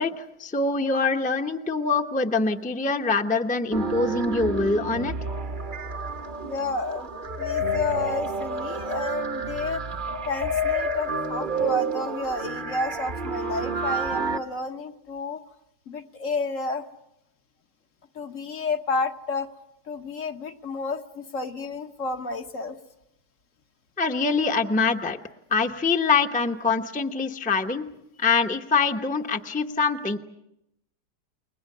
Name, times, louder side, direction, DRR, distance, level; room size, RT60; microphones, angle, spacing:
voice 1, 0.0-5.1 24.0-25.2 25.5-27.9 28.2-30.2, left 4 dB, 5° left, 5 dB, 0.8 m, -24 dB
sound 1, 3.7-14.4, right 2 dB, 35° right, 1.0 m, -29 dB
voice 2, 6.4-7.1 7.4-9.8 10.3-15.4 15.9-16.9 18.1-19.5 19.9-22.8, left 3 dB, 55° left, 6 dB, 1.5 m, -31 dB
29.5 x 22.0 x 6.7 m, 0.83 s
omnidirectional pair, 1.7 m